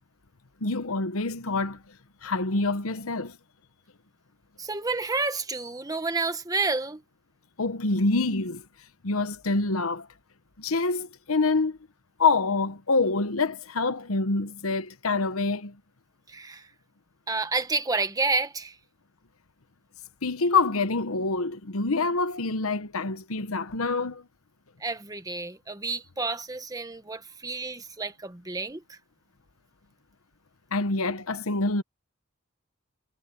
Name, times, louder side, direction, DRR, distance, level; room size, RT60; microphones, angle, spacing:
voice 1, 0.6-1.8 2.2-3.4 7.6-8.6 9.0-10.1 10.6-11.8 12.2-15.8 20.2-24.2 30.7-31.8, left 3 dB, 85° left, 1.1 m, -26 dB
voice 2, 4.6-7.0 16.3-16.6 17.3-18.7 24.8-29.0, right 3 dB, 15° right, 1.2 m, -30 dB
head